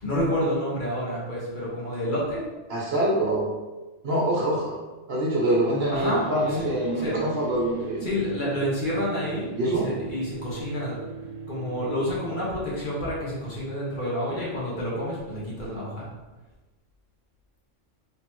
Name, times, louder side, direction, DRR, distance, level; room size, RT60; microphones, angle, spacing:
voice 1, 0.0-2.4 5.9-6.2 6.5-6.7 7.0-7.2 8.0-11.0 11.5-16.1, equal, 40° left, -7 dB, 1.2 m, -29 dB
voice 2, 2.7-3.4 4.0-4.7 5.1-8.1 9.5-9.9, right 1 dB, 55° right, -4 dB, 1.1 m, -25 dB
sound 1, 5.8-12.5, right 5 dB, 30° right, 1.1 m, -38 dB
3.5 x 2.9 x 4.4 m, 1.2 s
omnidirectional pair, 1.3 m